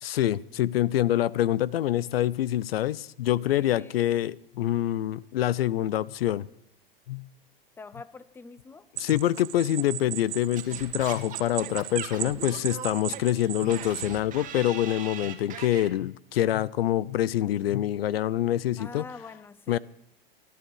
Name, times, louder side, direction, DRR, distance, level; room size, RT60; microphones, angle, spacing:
voice 1, 0.0-6.5 7.1-7.3 9.0-19.1 19.7-19.8, left 12 dB, 85° left, 0.5 m, -26 dB
voice 2, 3.4-4.0 7.8-8.8 18.8-19.8, left 4 dB, 10° left, 0.6 m, -45 dB
sound 1, 9.0-14.2, right 17 dB, 70° right, 0.5 m, -37 dB
Singing / Scratching (performance technique), 10.6-15.9, right 8 dB, 25° right, 2.2 m, -40 dB
18.5 x 12.0 x 4.8 m
hypercardioid pair, 120°, 29 cm